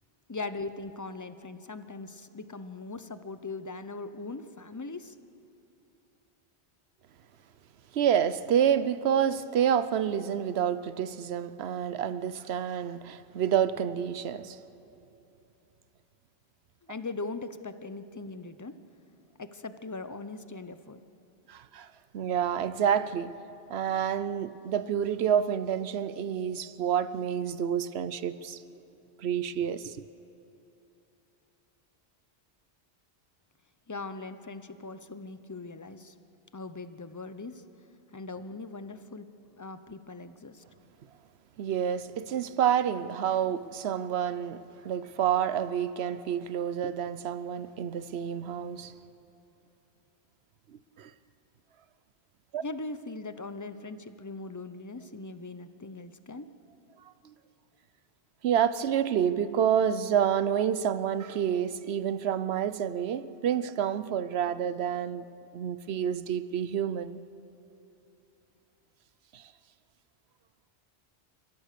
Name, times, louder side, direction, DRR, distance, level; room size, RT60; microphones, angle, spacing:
voice 1, 0.3-5.2 16.8-18.8 19.4-21.0 33.9-36.1 36.5-37.6 38.1-39.3 39.6-40.6 52.6-56.5, left 3 dB, 20° left, 0.6 m, -40 dB
voice 2, 7.9-14.6 21.5-21.9 22.1-23.4 23.7-28.6 29.2-30.0 41.6-48.9 51.0-51.1 52.5-52.6 57.2-57.3 58.4-65.2 65.5-67.2 69.3-69.4, right 9 dB, 70° right, 0.9 m, -28 dB
29.0 x 15.0 x 6.8 m
omnidirectional pair, 1.1 m